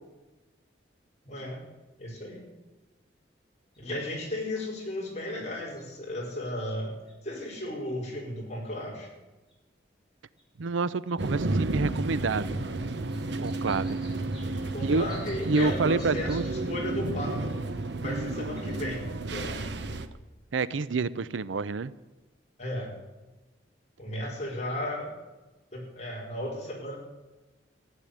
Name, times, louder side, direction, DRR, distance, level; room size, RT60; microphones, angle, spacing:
voice 1, 1.2-1.6 2.0-2.5 3.8-6.9 7.2-9.1 14.7-17.5 17.9-19.0 19.3-19.7 22.6-22.9 24.0-25.1 25.7-27.0, left 1 dB, 35° left, -2 dB, 4.9 m, -35 dB
sound 1, 3.7-3.8 4.5-4.7 5.5-5.8 6.3-6.4 7.1-7.2 7.9-8.0 8.6-8.7 9.5-9.6 10.4-10.5 11.1-11.4 12.1-12.4 13.1-16.6 17.5-17.8 18.4-19.0 20.7-20.8, equal, 5° right, 4.2 m, -51 dB
voice 2, 10.6-12.7 13.4-14.0 14.8-15.1 15.5-16.4 18.0-18.4 20.5-21.9, right 4 dB, 85° right, 17 dB, 0.6 m, -28 dB
sound 2, 11.2-20.1, right 2 dB, 70° right, 0.9 m, -32 dB
15.5 x 9.2 x 8.6 m, 1.1 s
head